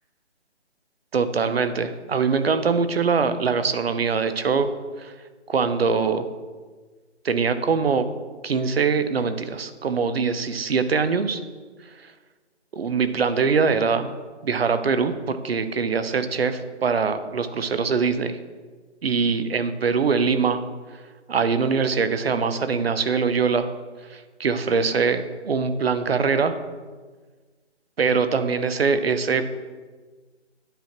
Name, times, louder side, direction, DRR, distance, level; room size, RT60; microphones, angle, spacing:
voice 1, 1.1-4.7 5.0-5.1 5.5-6.3 7.2-8.1 8.4-11.4 12.7-14.1 14.4-18.4 19.0-20.6 21.3-23.7 24.1-26.6 28.0-29.5, right 5 dB, 60° right, 11 dB, 0.6 m, -23 dB
10.0 x 5.9 x 2.9 m, 1.4 s
hypercardioid pair, 165°, 35 cm